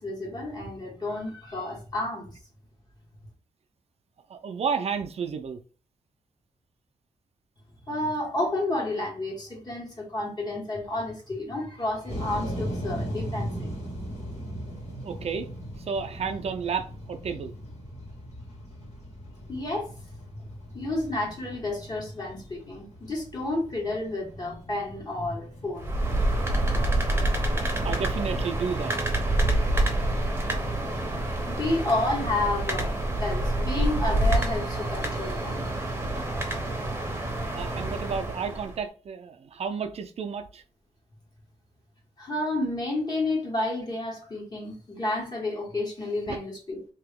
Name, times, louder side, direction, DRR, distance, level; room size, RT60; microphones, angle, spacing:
voice 1, 0.0-2.3 7.8-13.8 19.5-20.0 20.7-26.0 31.4-35.7 42.2-46.8, left 2 dB, 35° left, 1.6 m, -30 dB
voice 2, 4.3-5.6 15.0-15.5 15.8-17.5 27.8-29.0 37.5-40.6 46.3-46.4, right 6 dB, 60° right, 0.5 m, -31 dB
sound 1, 12.1-28.1, equal, 70° left, 1.9 m, -40 dB
sound 2, 25.8-38.8, right 1 dB, 20° right, 0.9 m, -27 dB
2.9 x 2.9 x 3.6 m
wide cardioid pair, 135°, 12 cm